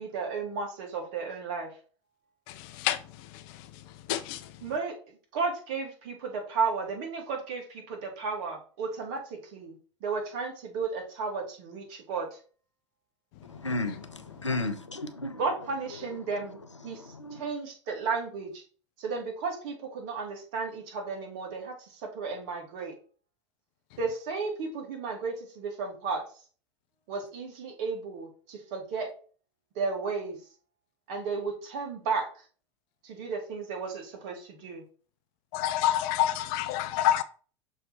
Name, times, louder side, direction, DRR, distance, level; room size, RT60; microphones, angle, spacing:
voice 1, 0.0-1.8 4.6-9.8 10.0-12.4 15.4-16.6 16.8-18.6 19.0-23.0 24.0-26.2 27.1-29.1 29.7-30.4 31.1-32.5 33.0-34.8, right 4 dB, 50° right, 2.0 m, -34 dB
voice 2, 13.5-15.4 16.9-17.5, left 2 dB, 90° left, 0.6 m, -34 dB
voice 3, 35.5-37.2, left 12 dB, 50° left, 0.6 m, -26 dB
6.3 x 3.3 x 4.6 m
figure-of-eight pair, 80°, 15 cm